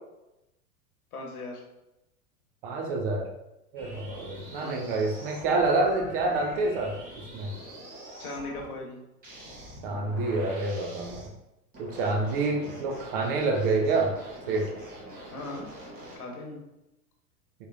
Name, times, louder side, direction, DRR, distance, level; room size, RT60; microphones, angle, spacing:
voice 1, 1.1-1.6 4.6-4.9 8.2-9.0 15.3-15.7 16.1-16.6, left 2 dB, 70° left, 0 dB, 1.1 m, -38 dB
voice 2, 2.6-3.3 3.7-7.0 7.3-7.5 9.8-11.3 11.8-14.1 14.5-14.7, right 3 dB, 35° right, 2 dB, 0.5 m, -27 dB
sound 1, 3.8-8.7 9.2-11.3 11.7-16.2, right 1 dB, 20° right, 1.1 m, -45 dB
3.6 x 3.1 x 2.4 m, 0.93 s
figure-of-eight pair, 95°, 46 cm